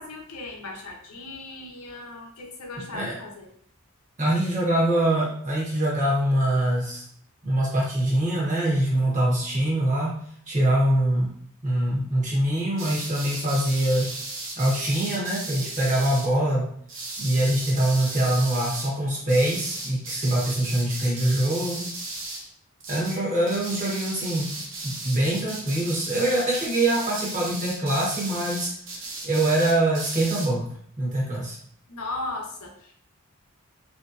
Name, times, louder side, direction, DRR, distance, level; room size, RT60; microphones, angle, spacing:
voice 1, 0.0-3.5 31.9-32.9, left 2 dB, 80° left, 1 dB, 0.7 m, -37 dB
voice 2, 4.2-7.0 7.4-10.2 10.5-11.3 11.6-14.1 14.6-16.7 17.2-21.9 22.9-24.5 24.8-28.7 29.2-31.6, right 1 dB, 35° right, -4 dB, 0.9 m, -24 dB
sound 1, 12.8-16.3 16.9-18.9 19.3-22.5 22.8-23.2 23.5-30.5, right 2 dB, 55° right, 0.7 m, -36 dB
3.0 x 2.7 x 2.5 m, 0.63 s
head